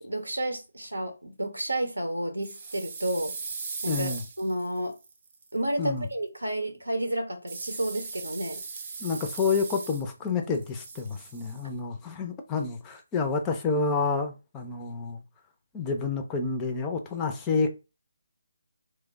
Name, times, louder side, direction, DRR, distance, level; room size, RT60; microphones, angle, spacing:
voice 1, 0.0-3.3 3.8-4.1 4.4-4.9 5.5-8.6, right 1 dB, 85° right, 0.7 m, -31 dB
sound 1, 2.4-5.5 7.5-10.3 10.5-11.6, right 4 dB, 40° right, 0.6 m, -39 dB
voice 2, 3.9-4.2 5.8-6.1 9.0-15.2 15.7-17.7, left 4 dB, 15° left, 0.4 m, -29 dB
3.1 x 2.0 x 3.4 m
figure-of-eight pair, 150°, 0 cm